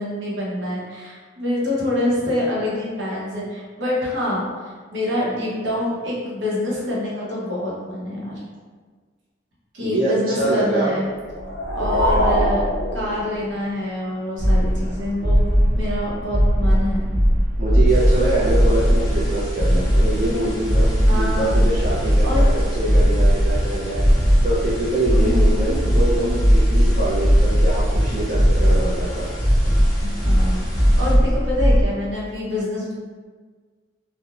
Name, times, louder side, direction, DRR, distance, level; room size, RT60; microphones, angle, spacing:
voice 1, 0.0-8.4 9.7-11.1 11.7-12.6 12.9-17.1 21.1-21.6 22.2-22.4 25.1-25.6 30.0-32.9, left 1 dB, 75° right, -5 dB, 0.7 m, -26 dB
voice 2, 9.8-10.9 17.6-29.3, right 2 dB, 50° right, -8 dB, 0.5 m, -24 dB
sound 1, 11.2-13.8, equal, 75° left, 0.4 m, -23 dB
sound 2, 14.4-31.8, equal, 10° right, 1.0 m, -18 dB
sound 3, 17.9-31.1, equal, 20° left, 0.7 m, -30 dB
2.4 x 2.0 x 2.9 m, 1.5 s
head